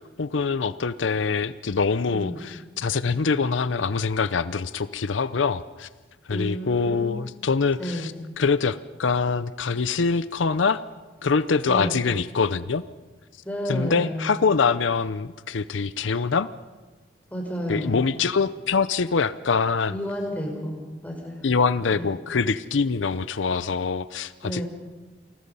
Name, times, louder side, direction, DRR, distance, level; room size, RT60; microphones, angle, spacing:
voice 1, 0.0-5.9 6.3-10.8 11.2-12.8 13.7-16.5 17.7-19.9 21.4-24.6, left 5 dB, 85° left, 15 dB, 0.6 m, -24 dB
voice 2, 6.3-7.2 7.8-8.1 11.6-11.9 13.4-14.2 17.3-18.0 19.9-21.5 21.9-22.1 24.4-24.6, equal, 10° left, 1 dB, 4.9 m, -31 dB
28.5 x 20.5 x 5.6 m, 1.3 s
head